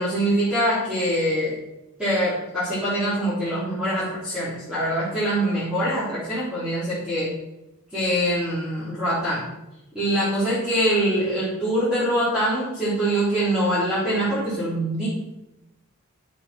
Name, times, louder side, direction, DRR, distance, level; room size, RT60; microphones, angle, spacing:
voice 1, 0.0-1.6 2.0-7.3 7.9-9.5 9.9-15.1, right 1 dB, 5° right, -12 dB, 3.8 m, -24 dB
9.4 x 7.7 x 6.3 m, 0.92 s
head